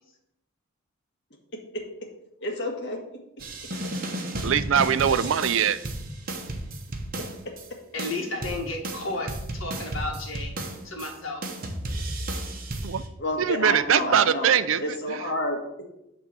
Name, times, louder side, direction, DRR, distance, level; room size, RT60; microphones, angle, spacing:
voice 1, 1.5-2.1 2.4-3.2 5.1-5.2 7.1-7.6 13.2-14.5 14.8-15.9, left 1 dB, 55° left, 1 dB, 1.7 m, -31 dB
sound 1, 3.4-7.7 8.0-11.1 11.4-13.1, right 1 dB, 45° right, 1.1 m, -33 dB
voice 2, 4.4-5.8 12.8-13.0 13.4-14.8 15.1-15.2, right 8 dB, 70° right, 14 dB, 0.4 m, -22 dB
voice 3, 7.9-10.5 10.8-11.5, left 2 dB, 70° left, 1 dB, 1.8 m, -33 dB
9.0 x 3.6 x 6.7 m, 0.85 s
head